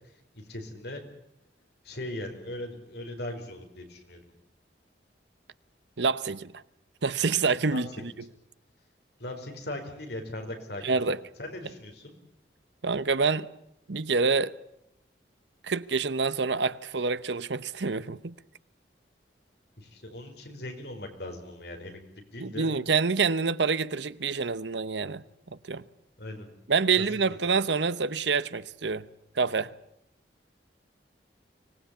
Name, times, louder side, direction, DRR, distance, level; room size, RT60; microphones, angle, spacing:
voice 1, 0.3-1.0 1.8-4.3 7.7-7.8 9.2-12.1 19.8-22.0 22.3-22.7 26.2-26.5, left 1 dB, 60° left, 4.9 m, -39 dB
voice 2, 6.0-6.6 7.0-8.1 10.8-11.2 12.8-13.5 13.9-14.5 15.6-18.3 22.4-25.2 25.7-25.8 26.7-29.1 29.4-29.7, right 4 dB, 75° right, 0.9 m, -27 dB
25.0 x 19.0 x 8.4 m
head